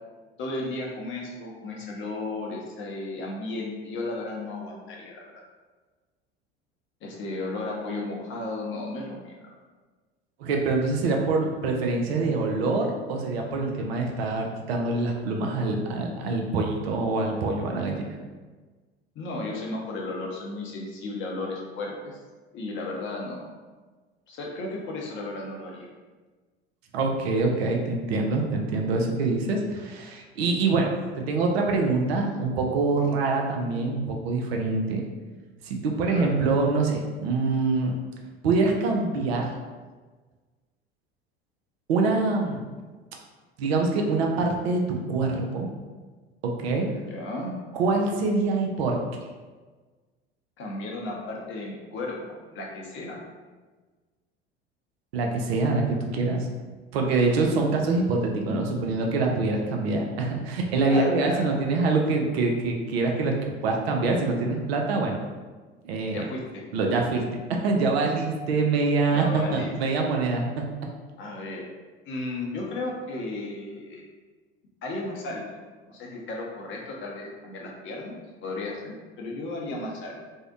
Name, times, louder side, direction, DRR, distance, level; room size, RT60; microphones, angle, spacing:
voice 1, 0.4-5.2 7.0-9.4 19.1-22.2 22.5-23.4 24.3-25.9 36.1-36.3 46.8-47.5 50.6-52.2 52.5-53.2 60.9-61.5 66.1-66.6 69.1-69.7 71.2-71.7 72.1-74.0 74.8-75.6 75.9-78.1 78.4-80.2, left 2 dB, 40° left, -2 dB, 0.6 m, -34 dB
voice 2, 10.4-18.1 26.9-35.0 35.6-37.9 38.4-39.5 41.9-42.6 43.6-44.8 45.1-45.7 46.4-46.9 47.7-49.2 55.1-56.5 56.9-63.3 63.6-65.2 65.8-66.2 66.7-67.2 67.5-70.6, right 3 dB, 70° right, 1 dB, 0.5 m, -25 dB
2.6 x 2.1 x 2.5 m, 1.4 s
hypercardioid pair, 70°, 31 cm